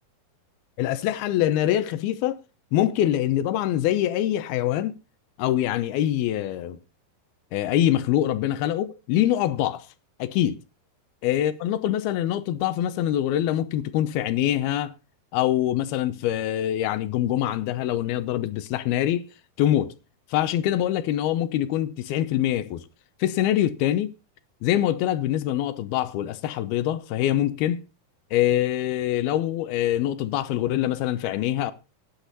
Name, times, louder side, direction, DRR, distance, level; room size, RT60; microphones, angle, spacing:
voice 1, 0.8-2.4 2.7-5.0 5.4-6.8 7.5-9.9 10.2-10.6 11.2-14.9 15.3-19.3 19.6-19.9 20.3-22.8 23.2-24.1 24.6-27.8 28.3-31.7, left 12 dB, 80° left, 2.8 m, -24 dB
15.0 x 10.0 x 4.1 m
omnidirectional pair, 4.5 m